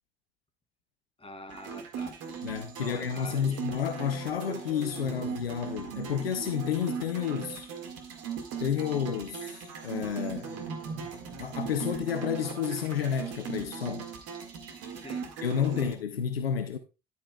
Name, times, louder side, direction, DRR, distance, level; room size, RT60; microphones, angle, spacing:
voice 1, 1.2-2.1 2.8-3.6 14.9-15.3 15.8-15.9, left 1 dB, 20° left, 3.5 m, -46 dB
sound 1, 1.5-15.9, right 6 dB, 55° right, 2.0 m, -39 dB
voice 2, 2.4-7.7 8.6-10.5 11.4-14.1 15.4-16.8, left 8 dB, 80° left, 0.7 m, -31 dB
11.0 x 9.3 x 2.3 m
figure-of-eight pair, 50°, 29 cm